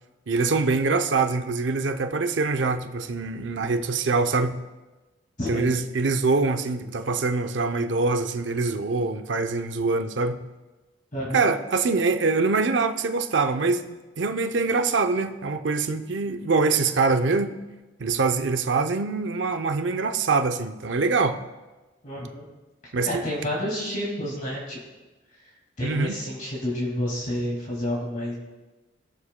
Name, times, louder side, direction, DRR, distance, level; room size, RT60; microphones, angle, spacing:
voice 1, 0.3-4.6 5.5-10.5 11.3-17.6 18.0-21.4 22.9-23.2 25.8-26.2, right 4 dB, 65° right, 8 dB, 0.6 m, -24 dB
voice 2, 5.4-5.7 11.1-11.5 18.0-18.1 22.0-22.5 22.8-24.8 25.8-28.3, left 1 dB, 45° left, -3 dB, 2.2 m, -30 dB
20.0 x 7.2 x 2.2 m, 1.2 s
head